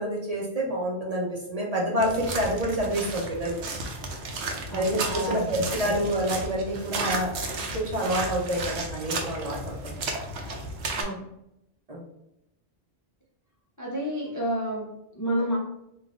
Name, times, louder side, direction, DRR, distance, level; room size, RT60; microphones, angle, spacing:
voice 1, 0.0-3.7 4.7-10.2 11.9-12.0, equal, 40° right, -3 dB, 0.8 m, -28 dB
sound 1, 2.0-11.0, right 3 dB, 90° right, 0.9 m, -33 dB
voice 2, 4.7-6.0 10.9-11.3 13.8-15.6, equal, 20° left, -3 dB, 0.5 m, -31 dB
3.9 x 2.5 x 3.6 m, 0.82 s
omnidirectional pair, 1.1 m